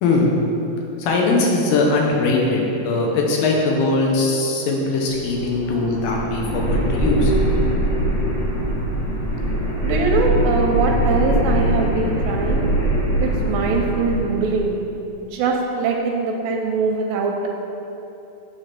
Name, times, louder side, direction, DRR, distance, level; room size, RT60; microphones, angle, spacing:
voice 1, 0.0-0.3 1.0-7.3, left 3 dB, 80° left, -1 dB, 2.7 m, -20 dB
sound 1, 5.1-14.6, right 1 dB, 60° left, 2.7 m, -22 dB
voice 2, 9.8-12.7 13.2-14.8 15.2-17.5, right 4 dB, 80° right, 1 dB, 2.2 m, -22 dB
9.2 x 3.4 x 5.9 m, 2.9 s
omnidirectional pair, 4.2 m